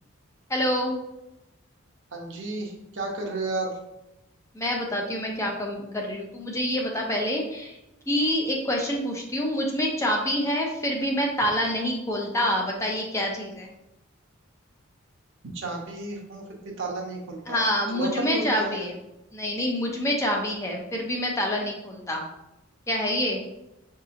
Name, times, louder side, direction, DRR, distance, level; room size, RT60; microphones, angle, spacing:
voice 1, 0.5-1.0 4.5-7.7 8.1-13.7 17.5-18.9 19.3-22.2 22.9-23.4, equal, 15° left, 0 dB, 0.6 m, -27 dB
voice 2, 2.1-3.7 15.5-18.9, right 2 dB, 65° right, 0 dB, 0.9 m, -33 dB
5.8 x 2.8 x 2.5 m, 0.91 s
head